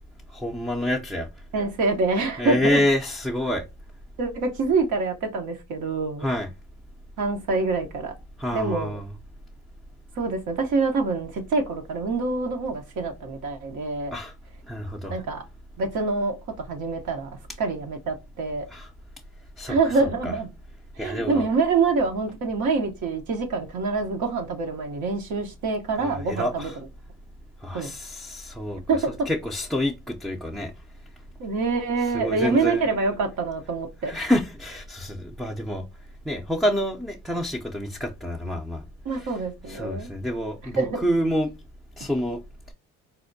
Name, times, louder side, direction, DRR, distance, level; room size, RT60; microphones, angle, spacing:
voice 1, 0.3-1.3 2.4-3.6 6.2-6.5 8.4-9.1 14.1-14.3 14.7-15.2 18.7-18.9 19.6-19.9 20.2-20.3 21.0-21.5 26.0-26.7 27.6-28.8 29.3-30.7 32.1-32.8 34.0-35.8 36.3-38.8 39.1-39.3 39.7-41.5 42.0-42.4, left 1 dB, ahead, 0.4 m, -27 dB
voice 2, 1.5-2.8 4.2-6.3 7.2-8.1 8.5-9.0 10.2-14.2 15.1-15.4 15.8-17.3 17.6-18.7 19.7-20.5 21.0-26.7 27.7-27.9 28.9-29.3 31.4-34.1 39.0-40.1 40.7-41.1, right 4 dB, 75° right, 0.8 m, -26 dB
4.2 x 2.1 x 2.6 m
cardioid pair, 90°, 30 cm